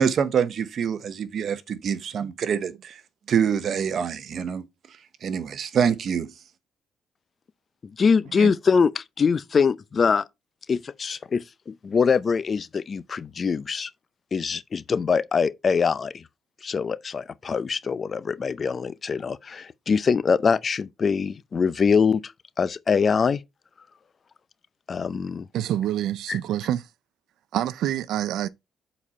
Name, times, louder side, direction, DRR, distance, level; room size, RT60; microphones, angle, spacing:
voice 1, 0.0-3.0 3.3-4.7 5.2-6.3, right 7 dB, 60° right, 0.9 m, -25 dB
voice 2, 7.8-10.3 10.7-13.9 14.3-16.2 16.6-22.3 22.6-23.4 24.9-25.5 26.3-26.4, left 5 dB, 40° left, 0.5 m, -23 dB
voice 3, 25.5-26.8 27.5-28.5, right 12 dB, 80° right, 0.4 m, -27 dB
7.3 x 4.2 x 4.3 m
cardioid pair, 90°, 0 cm